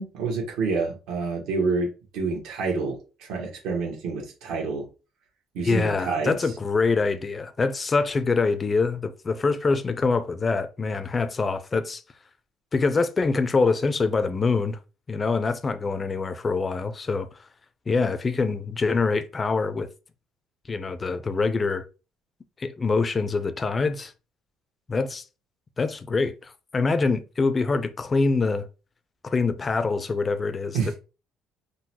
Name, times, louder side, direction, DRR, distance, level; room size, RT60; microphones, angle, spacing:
voice 1, 0.0-1.9 2.1-4.9 5.5-6.4 30.7-31.0, right 4 dB, 80° right, 1.2 m, -28 dB
voice 2, 5.6-12.0 12.7-14.8 15.1-17.3 17.9-19.9 20.7-21.8 22.6-24.1 24.9-25.2 25.8-28.7 29.2-30.9, left 4 dB, 25° left, 0.3 m, -25 dB
3.8 x 2.1 x 2.8 m
cardioid pair, 135°, 0 cm